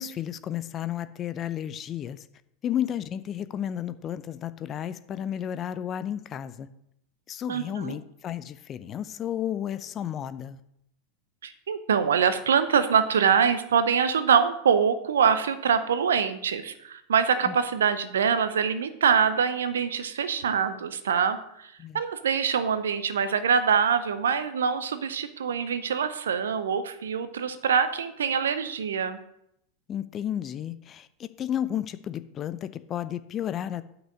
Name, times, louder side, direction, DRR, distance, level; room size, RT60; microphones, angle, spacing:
voice 1, 0.0-2.2 2.6-6.7 7.3-10.6 17.5-17.6 21.8-22.0 29.9-33.8, left 10 dB, 30° left, 14 dB, 0.5 m, -32 dB
voice 2, 7.5-8.0 11.4-29.2, right 7 dB, 70° right, 12 dB, 0.7 m, -24 dB
8.1 x 6.1 x 6.3 m, 0.76 s
figure-of-eight pair, 90°, 0 cm